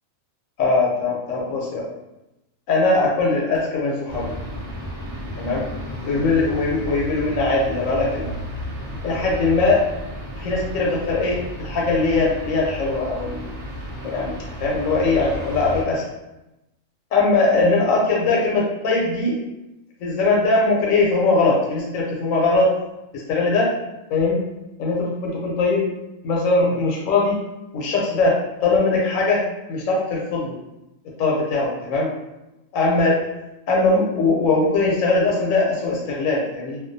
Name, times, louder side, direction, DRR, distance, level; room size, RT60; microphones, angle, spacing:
voice 1, 0.6-1.9 2.7-4.3 5.4-5.6 6.0-8.3 9.0-9.8 10.4-13.4 13.9-14.3 14.6-16.0 17.1-19.4 20.0-22.7 23.1-23.7 24.1-24.4 24.8-25.8 26.2-27.4 27.7-28.3 28.6-29.4 29.7-30.5 31.2-32.1 32.7-33.2 33.7-36.8, left 3 dB, 80° left, -3 dB, 1.0 m, -20 dB
sound 1, 4.1-15.8, equal, 45° right, 0.5 m, -33 dB
2.3 x 2.2 x 2.5 m, 0.94 s
omnidirectional pair, 1.4 m